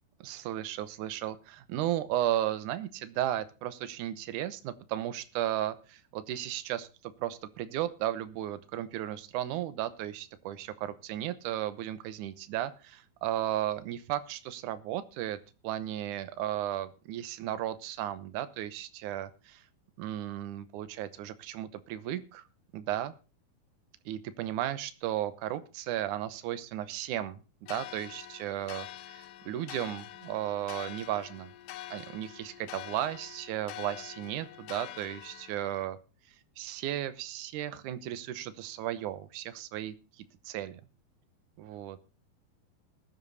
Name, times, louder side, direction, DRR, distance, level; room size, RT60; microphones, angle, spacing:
voice 1, 0.2-15.4 15.6-19.6 20.0-22.4 22.7-23.1 24.1-27.4 27.7-31.5 31.9-36.0 36.6-40.8 41.6-42.0, right 12 dB, 70° right, 14 dB, 2.0 m, -35 dB
sound 1, 27.7-35.9, left 13 dB, 75° left, 2.0 m, -45 dB
20.5 x 7.4 x 4.1 m, 0.32 s
omnidirectional pair, 4.5 m